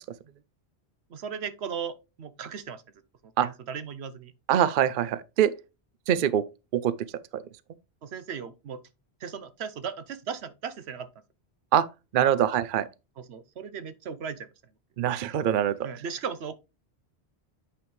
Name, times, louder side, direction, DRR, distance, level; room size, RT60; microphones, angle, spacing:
voice 1, 1.1-2.8 3.4-4.3 8.0-8.8 9.2-11.1 12.2-12.4 13.2-14.5 15.8-16.5, right 7 dB, 75° right, 1.0 m, -37 dB
voice 2, 4.5-5.5 6.1-6.4 6.7-6.9 7.3-7.4 11.7-11.8 12.1-12.8 15.0-15.8, right 10 dB, 60° right, 0.6 m, -23 dB
8.5 x 5.2 x 3.1 m
omnidirectional pair, 1.1 m